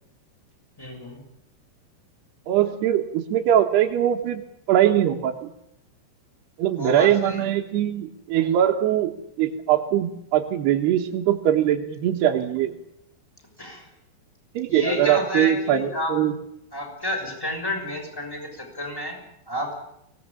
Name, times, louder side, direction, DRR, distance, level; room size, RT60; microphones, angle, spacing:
voice 1, 0.8-1.2 6.7-7.5 13.6-13.9 14.7-16.4 16.7-19.2 19.5-19.7, left 1 dB, 5° left, 3 dB, 5.9 m, -30 dB
voice 2, 2.5-4.4 4.7-5.5 6.6-9.1 9.4-12.8 14.5-16.3, right 11 dB, 65° right, 1 dB, 2.9 m, -21 dB
24.0 x 19.0 x 8.8 m, 0.77 s
omnidirectional pair, 5.8 m